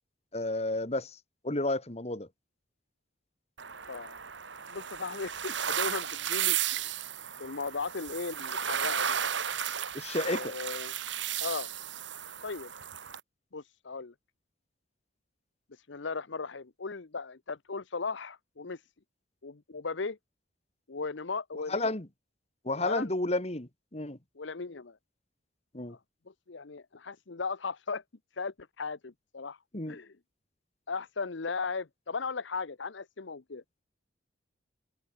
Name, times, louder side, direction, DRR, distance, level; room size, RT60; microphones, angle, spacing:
voice 1, 0.3-1.2 1.4-2.3 9.9-10.5 21.7-22.1 22.6-24.2 25.7-26.0 29.7-30.0, left 2 dB, 35° left, 2.1 m, -31 dB
sound 1, 3.6-13.2, right 9 dB, 70° right, 1.9 m, -34 dB
voice 2, 4.7-7.0 7.4-9.2 10.2-10.9 11.4-11.7 12.4-12.7 13.5-14.1 15.7-18.8 19.4-20.2 20.9-21.9 22.8-23.1 24.4-25.0 25.9-26.0 26.3-28.0 28.3-29.6 29.9-30.1 30.9-33.6, left 4 dB, 70° left, 0.9 m, -37 dB
head